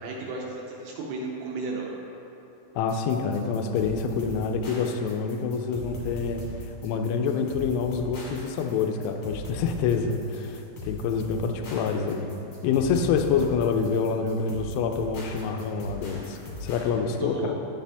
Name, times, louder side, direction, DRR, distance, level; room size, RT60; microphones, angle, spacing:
voice 1, 0.0-1.9 17.2-17.5, right 3 dB, 75° right, -2 dB, 2.4 m, -33 dB
voice 2, 2.8-6.4 6.8-12.4 12.6-17.5, left 5 dB, 85° left, 5 dB, 2.3 m, -27 dB
sound 1, 2.9-16.9, left 1 dB, 50° left, 2.5 m, -39 dB
10.0 x 7.8 x 3.4 m, 3.0 s
omnidirectional pair, 5.1 m